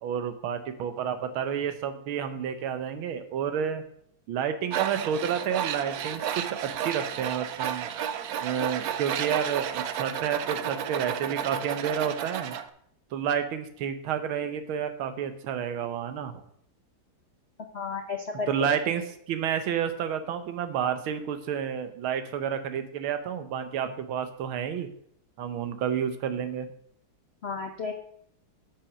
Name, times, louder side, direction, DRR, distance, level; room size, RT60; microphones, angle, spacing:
voice 1, 0.0-3.8 4.3-7.9 8.4-12.6 13.1-16.4 18.5-24.9 25.4-26.7, right 8 dB, 90° right, 9 dB, 1.7 m, -30 dB
Tools, 4.7-12.6, right 9 dB, 70° right, 0.8 m, -32 dB
voice 2, 17.7-18.7 27.4-27.9, left 4 dB, 65° left, 4 dB, 0.6 m, -32 dB
8.4 x 5.8 x 6.1 m, 0.68 s
omnidirectional pair, 2.2 m